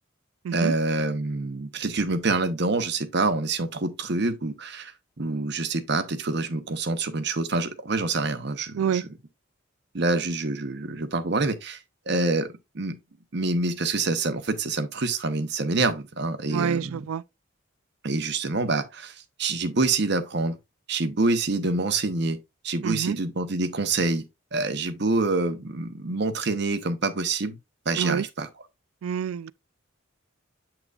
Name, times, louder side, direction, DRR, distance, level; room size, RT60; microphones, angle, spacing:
voice 1, 0.5-9.0 9.9-12.5 12.7-13.0 13.3-17.0 18.0-20.6 20.9-22.4 22.6-24.2 24.5-27.6 27.9-28.5, right 3 dB, 55° right, 0.9 m, -26 dB
voice 2, 16.5-17.2 22.8-23.2 28.0-28.2 29.0-29.5, right 7 dB, 85° right, 0.3 m, -27 dB
8.0 x 5.9 x 2.4 m
head